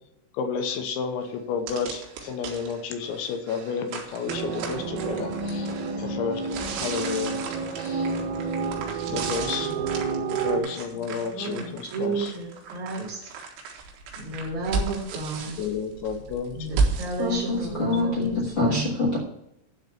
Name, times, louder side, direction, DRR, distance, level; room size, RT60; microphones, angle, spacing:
voice 1, 0.3-5.7 6.0-7.4 7.8-8.1 9.1-9.7 10.3-12.3 15.6-16.7 17.5-17.9, left 6 dB, 75° left, 6 dB, 3.1 m, -31 dB
sound 1, 0.7-0.8 1.3-1.4 1.7-18.5, right 4 dB, 90° right, 4.5 m, -34 dB
sound 2, 4.3-10.6, right 4 dB, 70° right, 4.2 m, -30 dB
voice 2, 9.5-10.0 10.5-13.2 14.2-15.6 16.5-18.3 18.6-19.0, right 3 dB, 45° right, -3 dB, 3.2 m, -33 dB
voice 3, 17.2-19.2, left 2 dB, 55° left, -5 dB, 1.2 m, -25 dB
12.0 x 4.1 x 8.0 m, 0.80 s
omnidirectional pair, 5.8 m